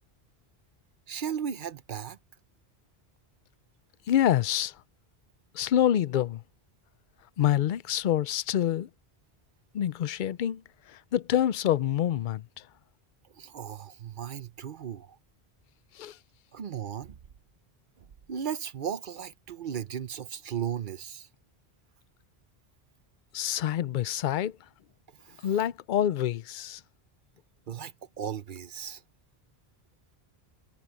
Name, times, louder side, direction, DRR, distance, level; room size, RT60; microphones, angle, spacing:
voice 1, 1.1-2.2 13.4-15.2 16.5-17.2 18.0-21.3 25.2-25.5 27.7-29.0, right 8 dB, 55° right, 0.8 m, -36 dB
voice 2, 4.1-4.8 5.5-6.4 7.4-8.9 9.7-12.7 15.9-16.2 23.3-24.7 25.4-26.8, left 11 dB, 60° left, 0.6 m, -27 dB
omnidirectional pair, 1.1 m